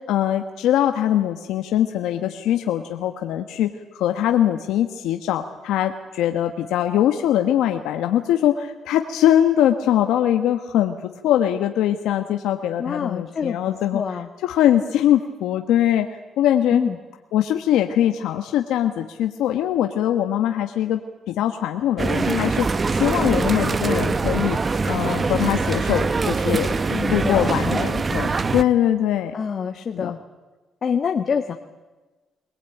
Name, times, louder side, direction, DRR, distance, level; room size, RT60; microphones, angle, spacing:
voice 1, 0.1-14.0 14.4-16.1 16.4-16.8 17.3-21.0 21.3-22.7 23.0-24.6 24.9-26.7 27.1-29.3 29.9-30.1, left 11 dB, 90° left, 6 dB, 1.2 m, -22 dB
voice 2, 12.8-14.3 16.7-17.0 26.9-27.7 29.3-30.2 30.8-31.5, left 6 dB, 50° left, 4 dB, 1.4 m, -26 dB
sound 1, 22.0-28.6, right 4 dB, 35° right, 0.9 m, -23 dB
22.0 x 20.0 x 9.2 m, 1.2 s
cardioid pair, 90°, 0 cm